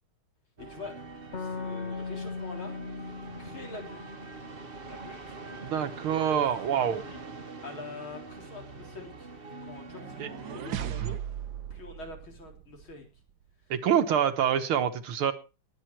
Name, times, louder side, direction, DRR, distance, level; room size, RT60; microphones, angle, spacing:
voice 1, 0.6-1.0 1.3-2.7 3.4-4.1 4.9-6.5 6.8-7.2 7.6-9.3 9.6-11.2 11.7-13.1, left 3 dB, 70° left, 2 dB, 4.4 m, -44 dB
sound 1, 0.6-10.9, right 3 dB, 30° right, 1.3 m, -44 dB
sound 2, 1.3-4.8, left 4 dB, 40° left, 1.2 m, -39 dB
voice 2, 5.7-7.0 10.2-10.3 13.7-15.3, right 9 dB, 75° right, 8 dB, 2.1 m, -26 dB
sound 3, 9.9-13.0, right 10 dB, 60° right, 1.1 m, -37 dB
19.5 x 9.3 x 4.5 m, 0.32 s
omnidirectional pair, 2.4 m